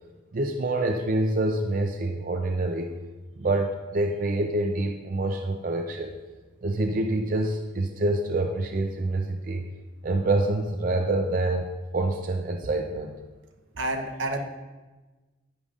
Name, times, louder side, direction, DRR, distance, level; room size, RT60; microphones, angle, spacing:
voice 1, 0.3-2.9 3.4-6.1 6.6-9.6 10.0-11.7 11.9-13.2, right 2 dB, 45° right, 4 dB, 0.4 m, -26 dB
voice 2, 13.8-14.4, right 1 dB, 75° right, 4 dB, 0.8 m, -29 dB
10.5 x 9.8 x 2.5 m, 1.2 s
head